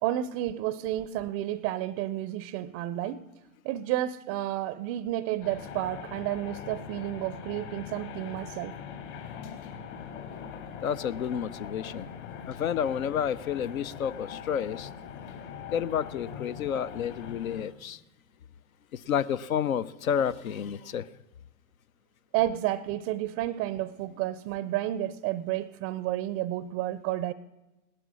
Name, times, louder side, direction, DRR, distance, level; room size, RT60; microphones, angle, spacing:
voice 1, 0.0-3.3 3.6-8.8 22.3-27.3, right 13 dB, 25° right, 0.4 m, -31 dB
sound 1, 5.4-17.6, left 7 dB, 55° left, 3.4 m, -42 dB
voice 2, 10.8-12.1 12.5-14.9 15.7-18.0 18.9-21.1, left 8 dB, 75° left, 0.7 m, -30 dB
17.5 x 12.0 x 6.2 m
hypercardioid pair, 120°, 42 cm